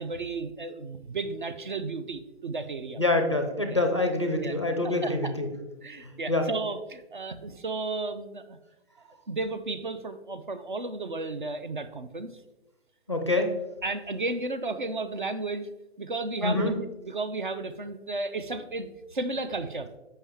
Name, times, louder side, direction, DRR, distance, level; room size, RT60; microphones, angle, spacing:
voice 1, 0.0-3.0 3.7-3.8 4.4-4.5 4.8-5.3 5.8-8.6 9.3-12.4 13.8-15.7 16.0-16.7 17.0-19.9, right 3 dB, 45° right, 10 dB, 0.4 m, -33 dB
voice 2, 3.0-5.5 6.0-6.5 13.1-13.5 16.4-16.7, left 2 dB, 25° left, 4 dB, 0.4 m, -26 dB
7.1 x 5.4 x 3.4 m, 1.0 s
hypercardioid pair, 175°, 34 cm